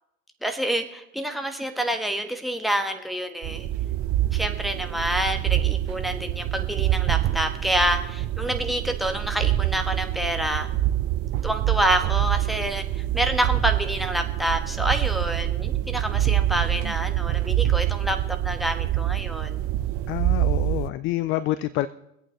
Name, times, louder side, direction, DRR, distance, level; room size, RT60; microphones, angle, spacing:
voice 1, 0.4-3.7 4.3-10.7 11.4-19.6, right 1 dB, ahead, 7 dB, 1.3 m, -27 dB
sound 1, 3.4-20.9, right 13 dB, 35° right, 0.6 m, -26 dB
voice 2, 20.1-21.9, left 15 dB, 30° left, 16 dB, 0.4 m, -27 dB
24.0 x 8.5 x 3.2 m, 0.83 s
figure-of-eight pair, 75°, 41 cm